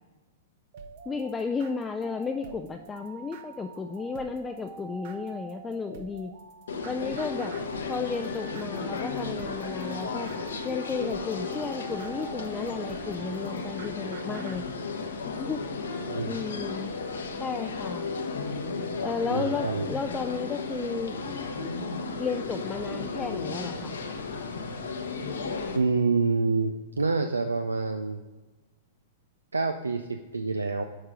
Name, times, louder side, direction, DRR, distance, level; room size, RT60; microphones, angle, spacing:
sound 1, 0.7-14.6, right 5 dB, 55° right, 0.9 m, -46 dB
voice 1, 1.1-6.3 6.8-7.5 7.9-10.3 10.6-14.6 15.3-15.6 16.2-16.9 17.4-18.1 19.0-21.2 22.2-24.0, left 4 dB, 15° left, 4 dB, 0.4 m, -33 dB
sound 2, 6.7-25.8, left 4 dB, 75° left, 0.9 m, -34 dB
voice 2, 19.3-19.9 25.7-28.2 29.5-30.8, right 4 dB, 90° right, 7 dB, 0.4 m, -27 dB
7.2 x 4.7 x 5.0 m, 1.2 s
hypercardioid pair, 105°, 0 cm